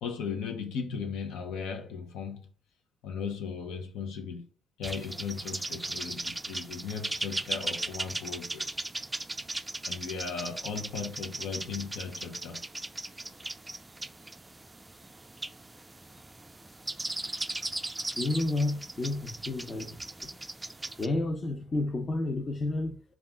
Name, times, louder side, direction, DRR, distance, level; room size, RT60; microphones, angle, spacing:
voice 1, 0.0-2.5 3.0-4.5 4.8-8.8 9.9-12.6 13.0-13.5, left 6 dB, 90° left, 0.7 m, -37 dB
sound 1, 4.8-21.1, right 2 dB, 15° right, 0.3 m, -38 dB
voice 2, 18.2-20.0 21.0-23.0, left 2 dB, 35° left, 0.7 m, -30 dB
3.5 x 2.4 x 3.7 m
cardioid pair, 90°, 0 cm